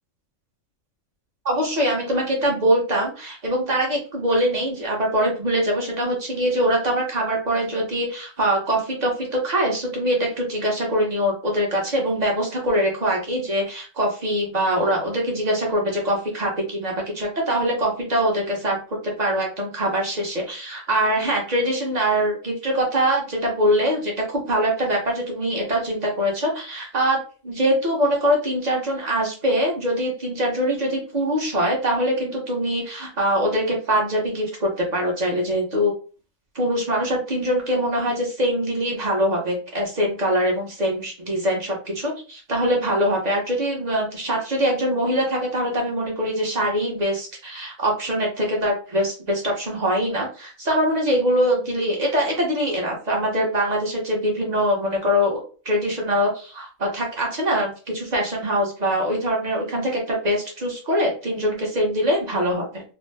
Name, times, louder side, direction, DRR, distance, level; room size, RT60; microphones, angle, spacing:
voice 1, 1.4-27.2 27.4-35.9 36.5-62.8, equal, 35° right, -1 dB, 0.9 m, -23 dB
2.7 x 2.0 x 3.2 m, 0.36 s
omnidirectional pair, 1.5 m